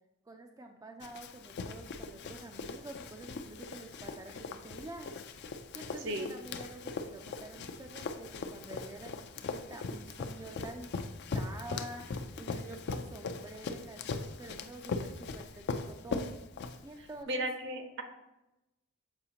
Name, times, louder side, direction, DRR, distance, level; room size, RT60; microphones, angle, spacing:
voice 1, 0.3-5.2 5.7-16.3 16.8-17.5, right 2 dB, 15° right, 3 dB, 0.3 m, -48 dB
Run, 1.0-17.2, left 4 dB, 55° left, 0.4 m, -40 dB
voice 2, 6.0-6.3 17.3-18.0, right 1 dB, 60° right, 6 dB, 0.7 m, -35 dB
6.9 x 4.9 x 2.8 m, 0.96 s
head